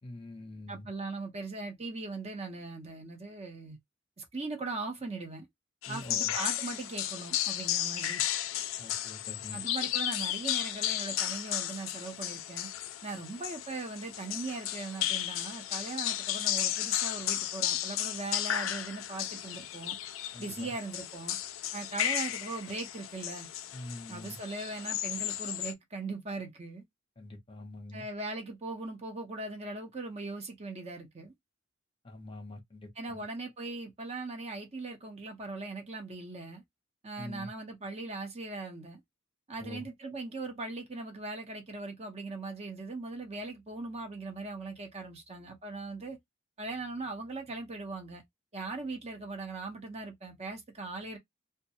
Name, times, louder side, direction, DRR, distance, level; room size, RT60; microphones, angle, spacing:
voice 1, 0.0-0.9 5.9-6.3 8.8-9.9 20.3-20.7 23.7-24.4 27.2-28.0 32.0-33.2 37.2-37.5 39.6-39.9, left 2 dB, 25° left, 0.7 m, -45 dB
voice 2, 0.7-3.8 4.2-5.5 5.9-8.2 9.5-12.7 13.0-20.0 20.4-21.4 21.7-23.5 24.1-26.8 27.9-31.3 33.0-36.6 37.0-39.0 39.5-46.2 46.6-48.2 48.5-51.2, right 3 dB, 35° right, 0.7 m, -39 dB
sound 1, 5.8-25.7, left 12 dB, 80° left, 0.4 m, -34 dB
2.3 x 2.1 x 2.7 m
head